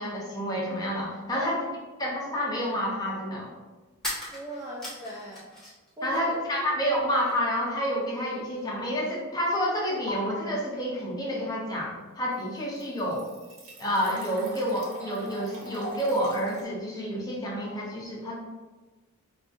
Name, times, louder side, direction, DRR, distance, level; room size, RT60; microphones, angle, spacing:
voice 1, 0.0-1.7 2.0-3.5 6.0-13.3 13.8-18.4, equal, 20° left, -4 dB, 0.7 m, -29 dB
sound 1, 3.9-5.9 6.2-7.1, left 1 dB, ahead, 1.1 m, -38 dB
voice 2, 4.3-5.5 6.0-6.4, equal, 15° right, -5 dB, 0.4 m, -38 dB
sound 2, 7.3-7.6 8.1-8.2 10.1-10.2 11.9-12.0 12.3-16.6, equal, 75° right, 0.8 m, -42 dB
5.0 x 2.5 x 2.4 m, 1.2 s
head